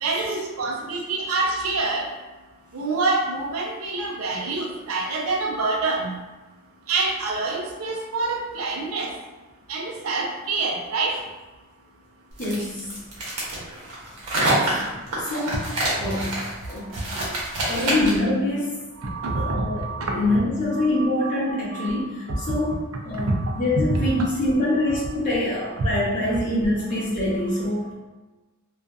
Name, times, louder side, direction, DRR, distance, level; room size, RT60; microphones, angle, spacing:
voice 1, 0.0-2.1 2.7-6.1 6.9-9.1 9.7-11.2 17.6-17.8 19.0-20.4 20.7-21.3 21.7-22.7 23.3-23.6 23.9-24.3 24.9-25.0 25.6-25.8, right 3 dB, 70° right, 1 dB, 0.5 m, -27 dB
voice 2, 12.4-13.0 14.4-14.8 15.2-15.7 16.0-16.4 16.7-17.3 17.7-18.7 19.3-19.8 20.1-27.9, left 1 dB, 35° left, -7 dB, 0.8 m, -25 dB
sound 1, 12.4-18.3, right 1 dB, 90° right, 0.9 m, -26 dB
2.5 x 2.4 x 2.2 m, 1.2 s
head